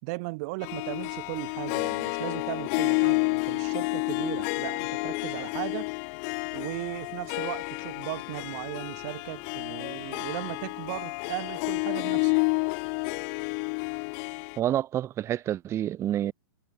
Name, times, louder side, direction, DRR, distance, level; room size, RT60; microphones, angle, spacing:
voice 1, 0.0-5.9 6.5-12.4, right 28 dB, 45° right, 5.6 m, -37 dB
Harp, 0.6-14.6, left 38 dB, 45° left, 3.2 m, -30 dB
voice 2, 14.6-16.3, right 11 dB, 25° right, 1.6 m, -28 dB
hypercardioid pair, 140°, 12 cm